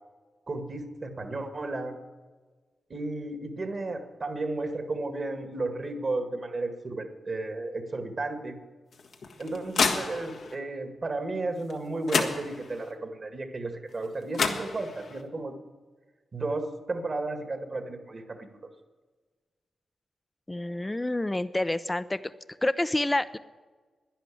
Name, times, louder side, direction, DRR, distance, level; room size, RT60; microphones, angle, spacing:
voice 1, 0.5-2.0 2.9-8.5 9.4-15.5 16.3-18.4, right 2 dB, 50° right, 6 dB, 2.0 m, -33 dB
sound 1, 8.9-10.6 11.7-11.8 12.1-12.9 14.0-14.1 14.3-15.2, left 4 dB, 75° left, 1.5 m, -29 dB
voice 2, 20.5-22.2 22.6-23.4, left 1 dB, 20° left, 14 dB, 0.6 m, -28 dB
11.5 x 10.5 x 8.6 m, 1.4 s
cardioid pair, 55°, 0 cm